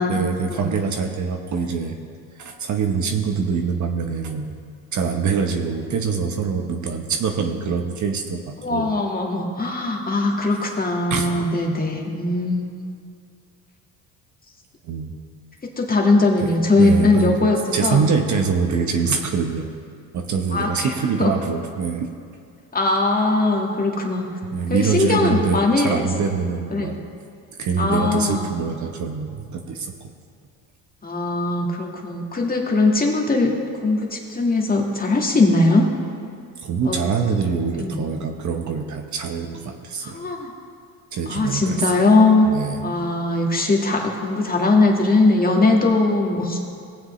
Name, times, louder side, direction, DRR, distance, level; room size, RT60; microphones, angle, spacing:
voice 1, 0.1-2.0 2.4-4.5 4.9-8.9 11.1-11.3 14.8-15.1 16.4-17.4 17.7-19.7 20.1-22.1 24.5-27.0 27.6-29.9 36.6-40.2 41.1-42.1 42.5-42.8, right 5 dB, 45° right, 4 dB, 1.1 m, -24 dB
voice 2, 8.6-12.6 15.6-18.0 20.5-20.9 21.2-21.3 22.7-24.3 24.7-26.1 26.7-27.0 27.8-28.5 31.0-33.5 33.8-35.9 36.8-37.0 37.8-38.0 40.0-40.5 41.3-42.5 42.8-46.6, left 2 dB, 20° left, 0 dB, 1.8 m, -20 dB
18.0 x 7.5 x 3.2 m, 2.3 s
supercardioid pair, 90°, 40 cm